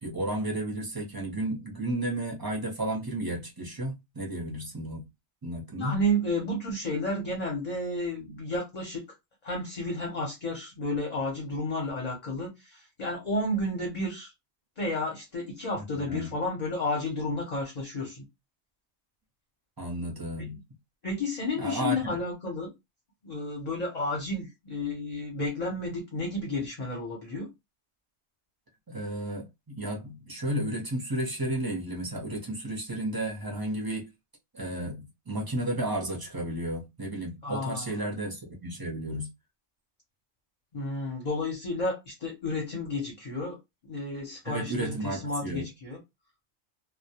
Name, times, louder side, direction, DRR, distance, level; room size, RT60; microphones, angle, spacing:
voice 1, 0.0-5.0 5.4-6.0 15.9-16.3 19.8-20.6 21.6-22.0 28.9-34.1 34.5-39.3 44.5-45.7, right 1 dB, 30° right, 0.4 m, -33 dB
voice 2, 5.7-9.0 9.4-14.3 14.8-18.2 20.4-20.5 21.0-22.7 23.2-27.5 37.4-38.0 40.7-43.6 43.9-46.0, left 1 dB, 40° left, 0.6 m, -31 dB
2.1 x 2.1 x 2.7 m
omnidirectional pair, 1.3 m